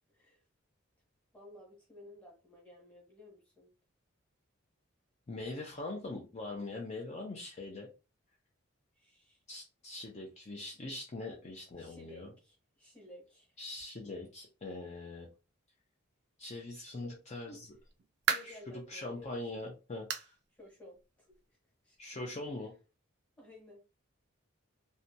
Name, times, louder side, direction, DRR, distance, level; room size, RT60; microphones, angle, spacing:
voice 1, 0.1-0.4 1.3-3.7 9.0-9.4 11.8-13.6 16.9-17.6 18.3-19.6 20.5-21.6 21.8-22.0 23.4-23.8, left 1 dB, 5° left, -2 dB, 1.1 m, -55 dB
voice 2, 5.3-7.9 9.5-12.3 13.6-15.3 16.4-17.7 18.4-18.6 18.9-20.3 22.0-22.7, left 2 dB, 30° left, 0 dB, 0.4 m, -42 dB
sound 1, 17.6-18.7 19.2-19.3 20.1-20.4 20.7-20.8 21.3-21.4 22.5-22.6, right 8 dB, 55° right, 0.3 m, -35 dB
2.7 x 2.2 x 2.6 m, 0.31 s
head